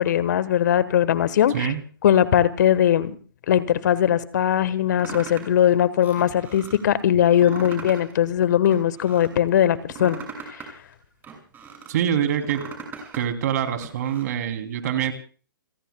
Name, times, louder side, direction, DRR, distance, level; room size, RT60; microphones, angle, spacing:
voice 1, 0.0-1.7 2.0-3.1 3.5-10.2, left 10 dB, 55° left, 15 dB, 1.3 m, -20 dB
sound 1, 5.0-5.6 6.0-6.8 7.2-8.1 8.4-9.3 9.7-11.9 12.3-13.2 13.6-14.2, right 5 dB, 15° right, 6.2 m, -39 dB
voice 2, 11.9-12.6 13.1-15.1, right 9 dB, 50° right, 7 dB, 3.0 m, -25 dB
30.0 x 18.0 x 2.3 m, 0.40 s
hypercardioid pair, 135°, 11 cm